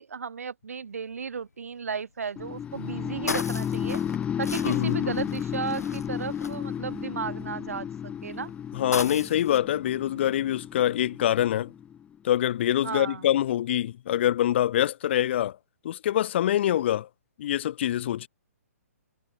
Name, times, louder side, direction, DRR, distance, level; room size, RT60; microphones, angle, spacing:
voice 1, 0.0-4.0 4.4-8.5 12.8-13.3, right 6 dB, 65° right, 4.9 m, -34 dB
sound 1, 1.0-1.5 2.0-2.1 2.2-7.4 8.1-9.6, left 4 dB, 80° left, 1.9 m, -37 dB
sound 2, 2.4-12.3, left 9 dB, 15° left, 2.2 m, -33 dB
voice 2, 4.6-5.2 8.7-11.7 12.2-15.6 15.8-17.1 17.4-18.3, left 12 dB, 45° left, 1.3 m, -25 dB
figure-of-eight pair, 130°, 8 cm